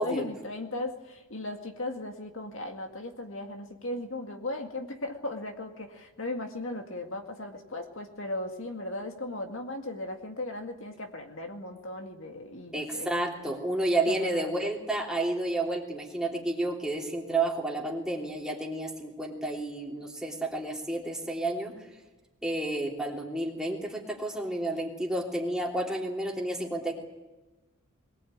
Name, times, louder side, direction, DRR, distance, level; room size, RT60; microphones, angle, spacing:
voice 1, 0.0-13.5 14.1-14.6, left 2 dB, 65° left, 4 dB, 2.1 m, -37 dB
voice 2, 12.7-21.7 22.4-26.9, right 2 dB, 5° right, -2 dB, 3.1 m, -31 dB
22.5 x 18.5 x 8.8 m, 1.1 s
head